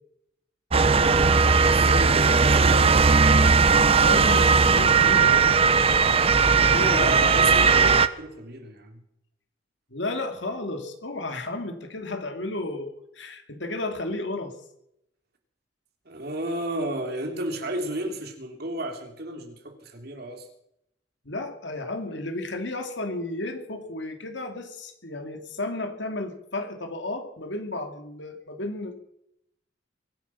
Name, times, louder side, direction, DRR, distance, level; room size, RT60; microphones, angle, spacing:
Motor vehicle (road) / Siren, 0.7-8.1, right 5 dB, 30° right, 0.7 m, -18 dB
voice 1, 1.0-1.4 1.6-3.0 6.7-9.0 16.1-20.5, right 1 dB, 55° right, 4 dB, 3.0 m, -33 dB
voice 2, 4.0-5.6 6.6-7.3 9.9-14.5 21.2-29.0, left 2 dB, 70° left, 6 dB, 2.5 m, -33 dB
23.0 x 10.5 x 5.7 m, 0.78 s
head